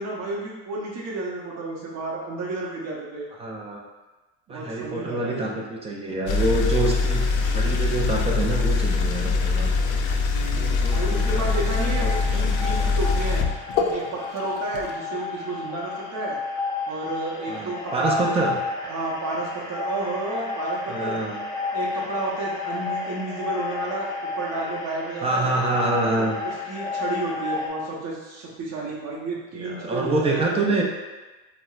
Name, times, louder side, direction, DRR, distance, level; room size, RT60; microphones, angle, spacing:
voice 1, 0.0-3.3 4.5-5.6 10.3-13.4 13.9-16.4 16.9-18.5 18.9-21.2 21.7-25.5 26.1-30.8, right 2 dB, 45° right, -4 dB, 0.7 m, -32 dB
voice 2, 3.4-3.8 4.5-9.7 10.5-12.9 17.5-18.6 20.9-21.4 25.2-26.4 29.5-30.8, right 2 dB, 20° right, -1 dB, 0.3 m, -27 dB
sound 1, 6.3-14.9, left 4 dB, 55° left, 0.5 m, -23 dB
sound 2, 10.9-27.7, left 3 dB, 10° left, 0.7 m, -32 dB
4.2 x 2.1 x 2.3 m, 1.2 s
supercardioid pair, 120°, 37 cm